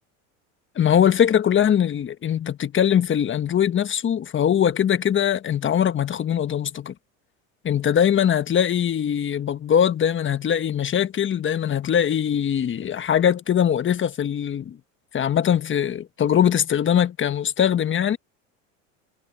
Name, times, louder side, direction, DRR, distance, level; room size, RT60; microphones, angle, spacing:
voice 1, 0.7-6.9 7.6-14.8 15.1-18.2, left 9 dB, 30° left, 1.4 m, -21 dB
hypercardioid pair, 95°, 39 cm